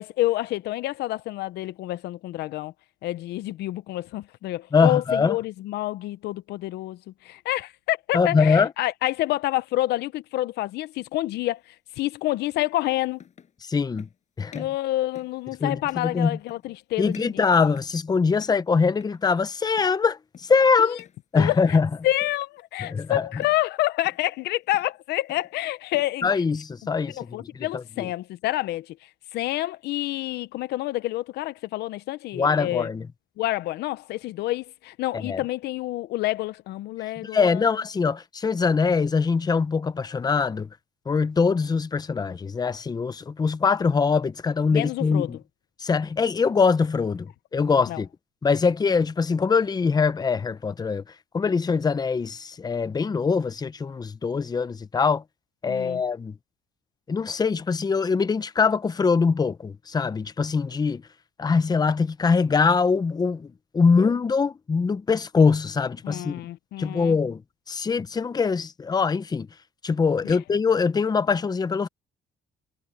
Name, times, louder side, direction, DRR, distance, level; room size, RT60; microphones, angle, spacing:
voice 1, 0.0-2.7 3.0-13.2 14.5-17.4 20.8-21.0 21.3-21.8 22.0-26.3 27.1-32.9 33.4-37.7 44.7-45.4 47.9-48.0 55.7-56.0 66.0-67.2 70.2-70.4, left 16 dB, 75° left, 0.7 m, -28 dB
voice 2, 4.7-5.4 8.1-8.7 13.6-14.1 14.4-14.7 15.6-16.3 17.0-21.0 21.3-21.9 22.8-23.2 26.2-28.1 32.3-33.0 35.1-35.4 37.2-40.7 41.1-45.4 45.8-48.1 48.4-51.0 51.3-55.2 55.6-56.3 57.1-61.0 61.4-63.5 63.7-66.4 66.8-67.4 67.7-69.5 69.8-71.9, left 5 dB, 25° left, 0.9 m, -23 dB
sound 1, 10.9-11.1 12.5-12.6 13.1-13.6 14.0-14.2 14.5-14.8 15.2-15.4 15.8-16.1 16.5-16.8 17.1-18.1 18.4-18.7 18.9-19.3 19.8-20.0 20.3-20.6 21.0-21.2 21.5-21.9 22.2-23.0 23.4-23.7 24.0-24.3 24.6-25.0 25.3-26.2, left 7 dB, 45° left, 7.2 m, -51 dB
cardioid pair, 110°, 17 cm